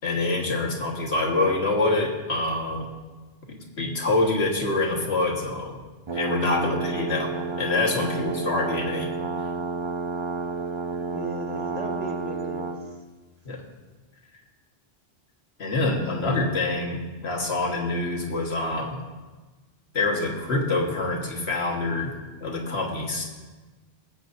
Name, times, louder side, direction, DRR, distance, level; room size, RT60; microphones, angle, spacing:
voice 1, 0.0-2.9 3.5-5.8 6.1-7.3 7.6-9.1 13.5-13.6 15.6-17.0 17.2-19.0 19.9-22.1 22.4-23.2, left 2 dB, 70° left, 0 dB, 1.8 m, -26 dB
sound 1, 6.1-12.8, right 3 dB, 30° right, 0.6 m, -30 dB
voice 2, 6.6-7.2 8.2-8.5 11.1-12.7, right 2 dB, 65° right, -3 dB, 2.5 m, -36 dB
19.5 x 8.4 x 2.7 m, 1.3 s
omnidirectional pair, 1.1 m